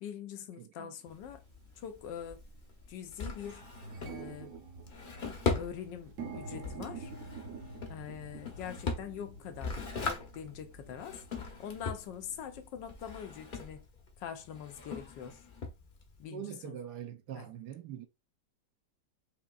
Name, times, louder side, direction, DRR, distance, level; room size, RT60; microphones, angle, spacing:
voice 1, 0.0-1.4 1.8-2.4 2.9-3.6 4.0-4.6 5.5-7.1 7.9-11.2 11.6-13.8 14.2-15.4 16.2-16.8 17.4-17.5, left 8 dB, 90° left, 1.3 m, -44 dB
voice 2, 0.6-1.0 16.3-18.1, right 9 dB, 75° right, 1.2 m, -43 dB
Drawer open or close, 1.1-16.2, left 4 dB, 45° left, 0.6 m, -40 dB
sound 1, 1.1-1.2 2.0-2.2 2.6-2.7 3.0-12.7, right 4 dB, 55° right, 1.0 m, -48 dB
5.2 x 2.9 x 2.4 m
omnidirectional pair, 1.9 m